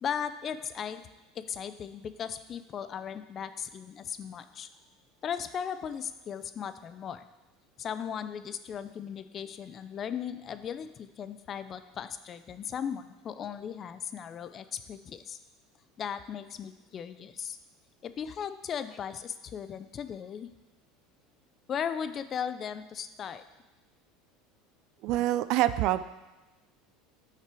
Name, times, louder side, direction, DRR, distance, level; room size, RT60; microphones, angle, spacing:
voice 1, 0.0-1.0 1.3-4.7 5.2-7.3 7.8-15.4 16.0-17.6 18.0-20.5 21.7-23.4, left 8 dB, 35° left, 12 dB, 0.4 m, -37 dB
voice 2, 25.0-26.0, right 14 dB, 60° right, 13 dB, 0.3 m, -26 dB
5.9 x 5.8 x 4.8 m, 1.1 s
supercardioid pair, 110°, 0 cm